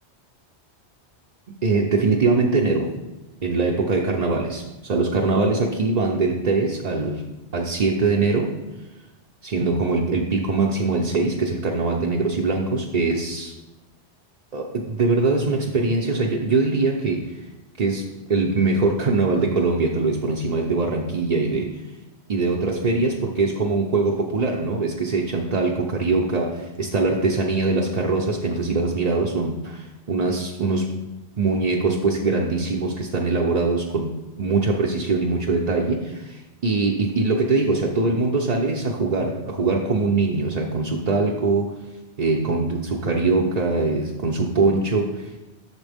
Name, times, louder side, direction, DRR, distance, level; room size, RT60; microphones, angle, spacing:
voice 1, 1.6-3.0 3.4-7.3 7.5-8.6 9.4-13.5 14.5-17.5 17.8-21.8 22.3-31.0 31.4-41.7 42.2-45.4, right 3 dB, 45° right, -1 dB, 0.7 m, -22 dB
12.0 x 6.6 x 3.5 m, 1.0 s
omnidirectional pair, 1.1 m